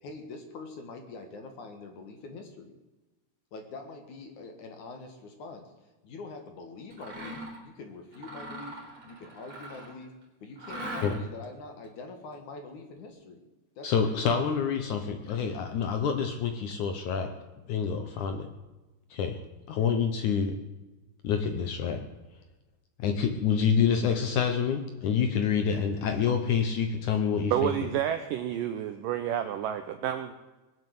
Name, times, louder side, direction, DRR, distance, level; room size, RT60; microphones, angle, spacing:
voice 1, 0.0-2.7 3.5-5.7 6.0-8.8 9.1-10.1 10.4-13.4 13.8-14.2, left 3 dB, 55° left, 5 dB, 2.6 m, -44 dB
Mechanisms, 6.9-7.6 8.1-10.0 10.6-11.4, right 1 dB, 25° right, 4.4 m, -40 dB
voice 2, 13.8-17.3 17.7-18.5 19.1-19.4 19.7-20.6 21.2-22.0 23.0-27.7, left 7 dB, 80° left, 6 dB, 1.7 m, -27 dB
voice 3, 27.5-30.3, right 11 dB, 85° right, 8 dB, 1.9 m, -29 dB
21.5 x 7.7 x 7.9 m, 1.1 s
omnidirectional pair, 4.9 m